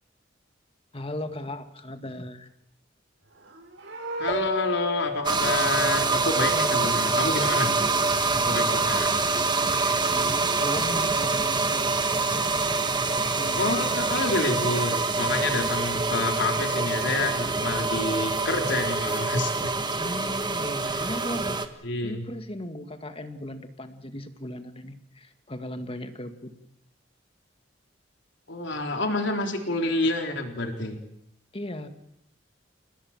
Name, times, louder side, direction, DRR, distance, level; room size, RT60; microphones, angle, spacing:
voice 1, 0.9-2.5 6.5-7.0 8.3-9.0 9.8-11.9 13.3-13.9 20.0-26.5 31.5-31.9, left 1 dB, 30° left, 8 dB, 2.1 m, -37 dB
Livestock farm animals working animals, 3.2-6.7 6.9-8.3 12.0-13.2, right 2 dB, 90° right, 6.4 m, -42 dB
voice 2, 4.2-7.7 8.4-9.1 9.4-10.0 13.6-19.7 20.9-21.1 21.8-22.3 28.5-31.0, left 2 dB, 70° left, 4 dB, 3.9 m, -28 dB
sound 1, 4.3-7.3, left 2 dB, 55° right, 5.5 m, -34 dB
sound 2, 5.3-21.7, right 3 dB, 25° right, 1.7 m, -25 dB
30.0 x 18.0 x 7.5 m, 0.77 s
head